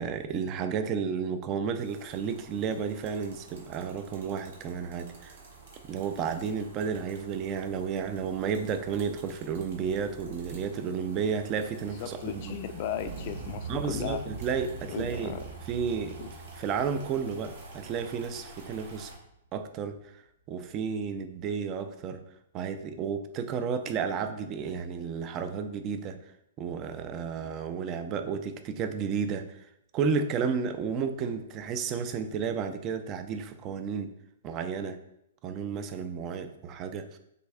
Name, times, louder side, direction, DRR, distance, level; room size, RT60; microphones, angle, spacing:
voice 1, 0.0-5.4 5.9-12.6 13.7-15.3 15.7-19.1 19.5-20.0 20.5-22.2 22.5-26.2 26.6-29.7 29.9-34.1 34.4-35.0 35.4-37.2, right 6 dB, 30° right, 9 dB, 0.4 m, -32 dB
sound 1, 1.8-19.2, right 4 dB, 65° right, 1.2 m, -48 dB
voice 2, 12.0-14.2 14.9-15.4 16.2-16.3, left 9 dB, 50° left, 9 dB, 0.4 m, -36 dB
Explosion, 12.9-19.0 19.3-19.4, right 3 dB, 90° right, 1.4 m, -43 dB
6.6 x 2.7 x 2.3 m, 0.78 s
hypercardioid pair, 125°, 0 cm